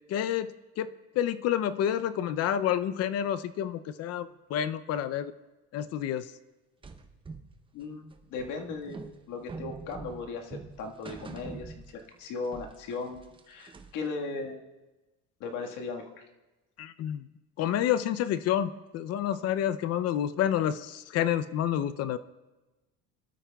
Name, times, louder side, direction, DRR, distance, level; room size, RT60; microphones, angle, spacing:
voice 1, 0.1-0.5 0.8-0.9 1.2-5.3 5.7-6.3 16.8-17.3 17.6-22.2, left 10 dB, 50° left, 14 dB, 0.5 m, -29 dB
sound 1, 6.8-12.3 12.5-14.1, right 4 dB, 15° right, 0.7 m, -44 dB
voice 2, 7.7-14.6 15.4-16.2, left 4 dB, 70° left, 2 dB, 1.6 m, -37 dB
22.5 x 12.5 x 2.3 m, 1.1 s
cardioid pair, 135°, 32 cm